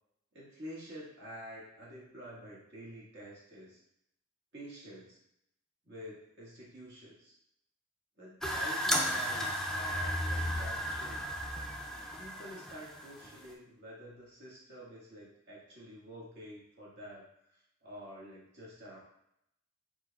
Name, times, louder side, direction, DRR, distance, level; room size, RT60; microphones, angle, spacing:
voice 1, 0.3-3.8 4.5-5.2 5.8-7.3 8.2-11.3 12.2-19.0, equal, 60° right, -6 dB, 1.7 m, -48 dB
sound 1, 8.4-13.5, equal, 5° left, 0.4 m, -34 dB
4.6 x 3.9 x 2.3 m, 0.77 s
head